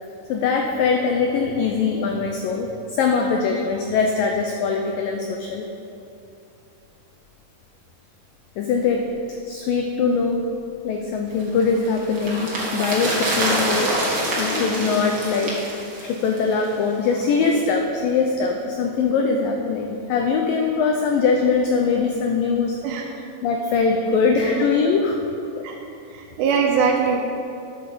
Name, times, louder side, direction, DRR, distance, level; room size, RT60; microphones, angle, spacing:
voice 1, 0.3-5.7 8.6-10.5 10.8-22.8 23.4-25.2 25.6-25.7, left 5 dB, 80° left, 2 dB, 2.0 m, -22 dB
sound 1, 11.4-16.8 17.1-17.2, right 1 dB, 40° right, 1.9 m, -26 dB
voice 2, 24.1-24.5 25.6-25.8 26.1-27.2, right 6 dB, 90° right, -1 dB, 3.1 m, -22 dB
9.7 x 8.7 x 6.8 m, 2.7 s
omnidirectional pair, 4.9 m